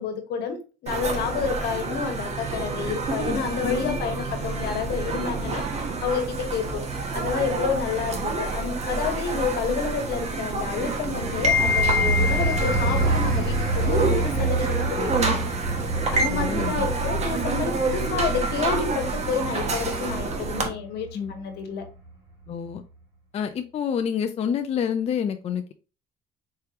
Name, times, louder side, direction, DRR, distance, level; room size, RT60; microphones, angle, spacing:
voice 1, 0.0-5.6 6.0-6.8 7.1-15.4 16.1-21.8, left 6 dB, 75° left, 6 dB, 1.2 m, -29 dB
sound 1, 0.9-20.7, right 2 dB, 40° right, 1.1 m, -27 dB
voice 2, 3.3-4.0 16.3-16.9 21.1-21.3 22.5-22.8 23.3-25.7, left 8 dB, 40° left, 7 dB, 0.4 m, -28 dB
sound 2, 11.0-21.4 21.8-22.1, right 2 dB, 85° right, 2.5 m, -28 dB
4.5 x 3.3 x 2.9 m, 0.33 s
cardioid pair, 110°, 17 cm